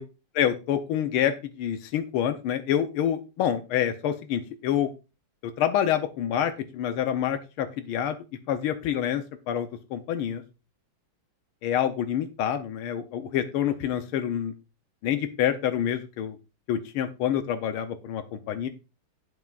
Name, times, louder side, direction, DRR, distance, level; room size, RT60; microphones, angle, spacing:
voice 1, 0.3-4.9 5.6-8.2 8.5-10.4 11.6-14.5 15.0-16.4 16.7-18.7, left 10 dB, 90° left, 8 dB, 1.7 m, -27 dB
18.0 x 6.0 x 2.5 m, 0.29 s
omnidirectional pair, 2.3 m